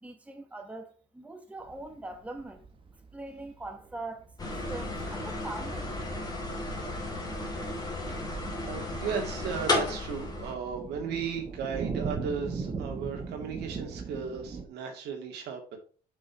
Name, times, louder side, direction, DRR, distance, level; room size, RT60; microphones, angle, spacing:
voice 1, 0.0-2.7 3.1-4.2 4.7-5.9 7.0-7.1 8.1-8.2, right 2 dB, 10° right, 1.2 m, -42 dB
sound 1, 1.7-14.7, right 4 dB, 30° right, 0.9 m, -40 dB
sound 2, 4.4-10.5, left 2 dB, 25° left, 2.5 m, -33 dB
voice 2, 8.1-15.8, right 6 dB, 80° right, 2.1 m, -36 dB
6.5 x 5.3 x 4.4 m
cardioid pair, 110°, 17 cm